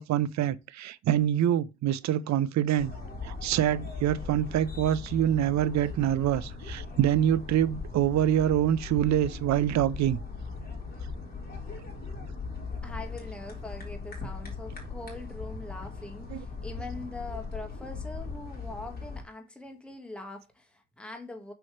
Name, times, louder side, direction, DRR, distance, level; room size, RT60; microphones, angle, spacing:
voice 1, 0.0-2.9 3.2-10.2 16.3-16.4, right 11 dB, 65° right, 0.6 m, -25 dB
sound 1, 2.8-19.2, left 4 dB, 30° left, 3.6 m, -39 dB
voice 2, 12.8-21.5, left 2 dB, 5° left, 1.6 m, -42 dB
6.2 x 5.6 x 3.2 m
cardioid pair, 90°, 30 cm